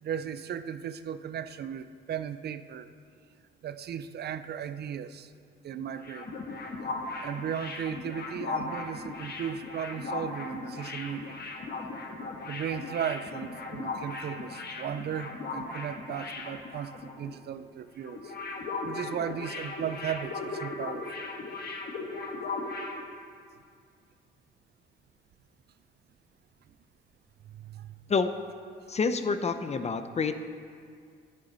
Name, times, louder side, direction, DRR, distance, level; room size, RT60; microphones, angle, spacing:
voice 1, 0.0-2.9 3.6-5.3 5.6-6.3 7.2-11.4 12.5-18.3 18.8-21.1 27.4-27.9, right 8 dB, 55° right, 12 dB, 0.5 m, -36 dB
sound 1, 5.8-17.3 17.6-17.7 18.0-23.0, left 3 dB, 55° left, 1.4 m, -37 dB
voice 2, 28.9-30.4, left 4 dB, 35° left, 10 dB, 0.6 m, -28 dB
10.0 x 9.8 x 4.0 m, 2.2 s
cardioid pair, 90°, 20 cm